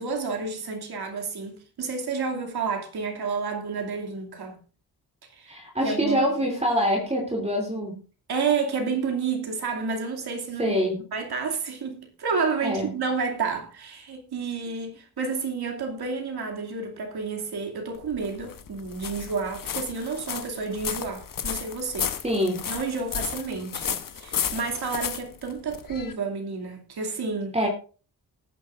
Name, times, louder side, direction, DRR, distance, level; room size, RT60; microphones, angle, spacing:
voice 1, 0.0-4.6 5.3-5.6 5.8-6.3 8.3-10.8 11.1-22.2 22.7-27.6, right 5 dB, 75° right, 2.7 m, -30 dB
voice 2, 5.5-8.0 10.6-11.0 12.6-12.9 22.2-22.6 27.5-27.7, equal, 15° right, 2.9 m, -25 dB
sound 1, 17.9-26.1, left 8 dB, 60° left, 1.0 m, -33 dB
19.5 x 9.4 x 2.6 m
wide cardioid pair, 165°, 38 cm